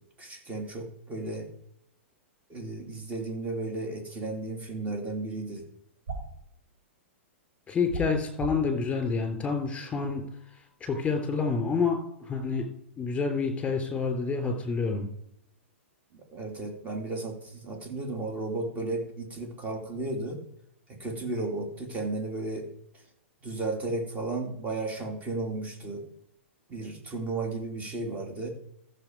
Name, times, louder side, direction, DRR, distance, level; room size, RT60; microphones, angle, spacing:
voice 1, 0.2-1.5 2.5-5.6 16.1-20.4 20.9-22.7 22.9-23.0 23.4-26.0 26.7-28.5, right 2 dB, 20° right, 3 dB, 3.0 m, -34 dB
sound 1, 6.1-6.4 7.8-8.7, right 3 dB, 70° right, 3.4 m, -35 dB
voice 2, 7.7-10.2 10.8-12.6 13.0-15.1, left 4 dB, 15° left, 5 dB, 3.2 m, -28 dB
14.5 x 6.7 x 4.8 m, 0.76 s
hypercardioid pair, 110°, 7 cm